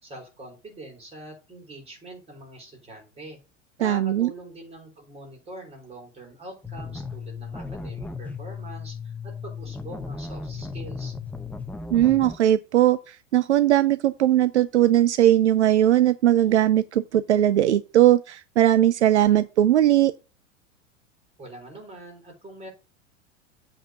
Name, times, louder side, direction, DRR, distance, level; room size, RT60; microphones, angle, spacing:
voice 1, 0.0-3.4 3.8-11.1 21.4-22.7, right 1 dB, 15° right, 4.2 m, -43 dB
voice 2, 3.8-4.3 11.9-20.1, right 12 dB, 70° right, 0.5 m, -19 dB
sound 1, 6.6-12.4, left 4 dB, 5° left, 0.6 m, -35 dB
7.8 x 4.2 x 6.5 m
figure-of-eight pair, 90°, 37 cm